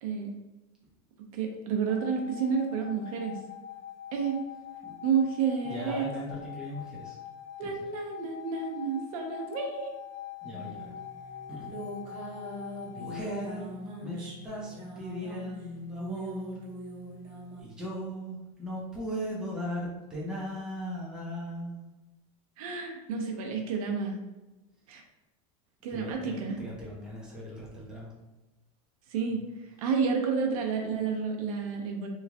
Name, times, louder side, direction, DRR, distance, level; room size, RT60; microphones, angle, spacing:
voice 1, 0.0-0.4 1.3-3.4 4.1-4.4 5.0-6.1 7.6-9.9 22.6-24.2 24.9-25.0 25.8-26.6 29.1-29.4 29.8-32.1, right 6 dB, 80° right, 2 dB, 0.7 m, -30 dB
sound 1, 1.9-13.6, left 10 dB, 55° left, 0.6 m, -44 dB
voice 2, 5.6-7.2 7.6-7.9 10.4-11.0 11.5-11.7 12.9-16.6 17.6-21.8 25.9-28.1, equal, 5° right, -5 dB, 0.6 m, -38 dB
sound 2, 10.5-17.6, right 1 dB, 30° right, 0.9 m, -42 dB
3.1 x 2.3 x 3.6 m, 1.0 s
supercardioid pair, 175°, 18 cm